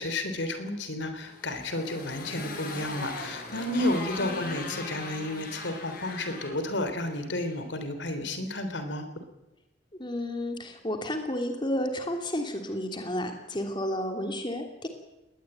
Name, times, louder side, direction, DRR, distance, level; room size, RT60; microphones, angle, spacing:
voice 1, 0.0-9.0, left 1 dB, 90° left, 8 dB, 3.5 m, -32 dB
Motorcycle, 1.2-7.6, left 2 dB, 55° left, 6.1 m, -40 dB
voice 2, 4.2-4.6 10.0-14.9, left 1 dB, 25° left, 5 dB, 3.0 m, -32 dB
21.0 x 19.0 x 9.1 m, 0.95 s
head